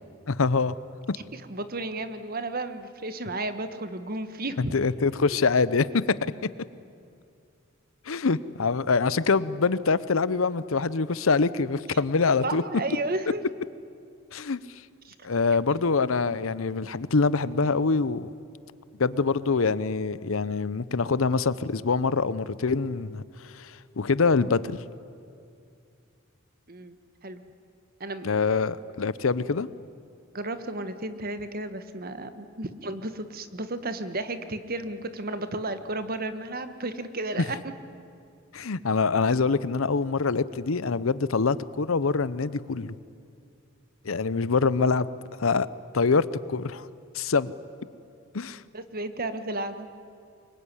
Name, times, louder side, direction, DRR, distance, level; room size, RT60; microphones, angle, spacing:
voice 1, 0.3-0.7 1.1-1.2 4.7-6.3 8.1-12.6 14.3-14.6 15.2-18.3 19.0-23.2 23.5-24.8 28.2-29.7 38.5-43.0 44.0-45.1 45.4-45.7 45.9-46.9 47.1-47.5 48.3-48.6, left 4 dB, 75° left, 17 dB, 0.7 m, -25 dB
voice 2, 1.3-4.7 5.3-5.4 11.9-12.0 12.4-13.4 15.0-15.1 15.7-15.8 26.7-27.0 27.2-27.4 28.0-28.3 30.3-37.6 48.7-49.9, right 2 dB, 45° right, 10 dB, 1.4 m, -33 dB
24.5 x 22.0 x 10.0 m, 2.4 s
head